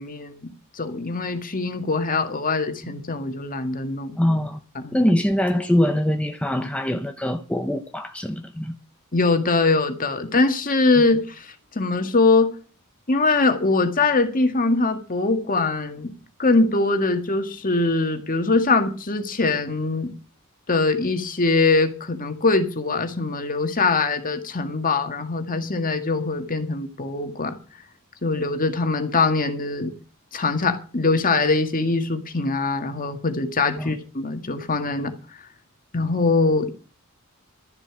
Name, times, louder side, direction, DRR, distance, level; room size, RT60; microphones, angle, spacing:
voice 1, 0.0-4.2 4.8-5.0 9.1-12.5 13.1-16.1 16.4-20.1 20.7-27.6 28.2-29.9 30.3-35.2 35.9-36.7, left 3 dB, 40° left, 1.9 m, -22 dB
voice 2, 4.2-4.6 4.9-8.7 33.8-33.9, left 1 dB, 5° left, 0.9 m, -23 dB
13.0 x 11.0 x 6.1 m
head